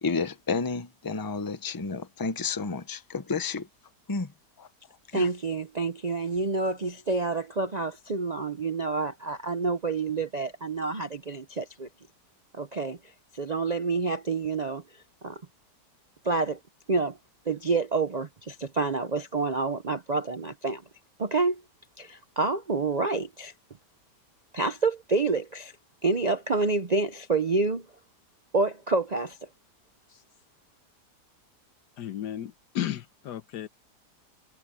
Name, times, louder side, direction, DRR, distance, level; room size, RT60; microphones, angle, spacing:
voice 1, 0.0-3.7 4.1-4.3 4.6-4.7 5.1-5.3, left 4 dB, 20° left, 0.6 m, -31 dB
voice 2, 5.1-11.9 12.5-13.0 13.3-14.8 15.2-15.4 16.2-16.6 16.9-17.2 17.5-20.8 21.2-21.6 22.0-23.5 24.5-25.7 26.0-27.9 28.5-29.4, right 3 dB, 45° right, 0.5 m, -28 dB
voice 3, 32.0-33.7, left 11 dB, 80° left, 1.5 m, -34 dB
omnidirectional pair, 1.8 m